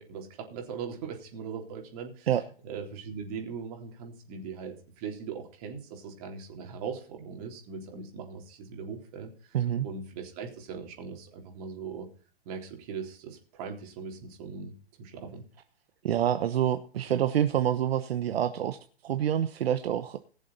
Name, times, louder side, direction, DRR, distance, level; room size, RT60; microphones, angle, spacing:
voice 1, 0.0-2.3 2.6-9.6 9.8-12.1 12.5-15.4, right 6 dB, 35° right, 2 dB, 3.7 m, -40 dB
voice 2, 9.5-9.9 16.0-18.8 19.0-20.2, right 10 dB, 70° right, 9 dB, 1.1 m, -27 dB
20.5 x 7.3 x 4.1 m, 0.41 s
hypercardioid pair, 160°, 31 cm